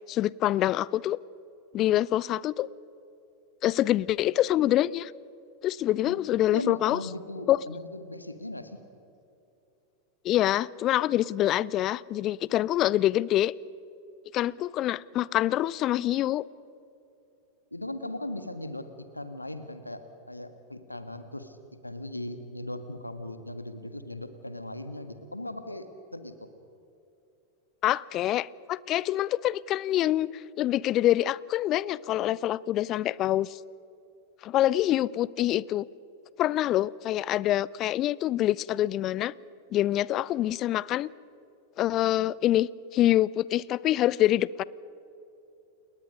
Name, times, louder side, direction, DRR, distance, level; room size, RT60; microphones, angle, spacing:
voice 1, 0.1-1.2 1.7-2.7 3.6-5.1 5.6-7.0 7.5-7.6 10.2-13.5 14.3-16.4 27.8-33.6 34.4-35.9 36.4-39.3 39.7-41.1 41.8-44.6, left 13 dB, 35° left, 22 dB, 0.5 m, -25 dB
voice 2, 6.5-8.8 17.7-18.9 19.1-21.6 21.8-25.9 26.1-26.5, left 1 dB, 85° left, 10 dB, 1.5 m, -38 dB
30.0 x 20.5 x 5.3 m, 2.8 s
figure-of-eight pair, 90°, 0 cm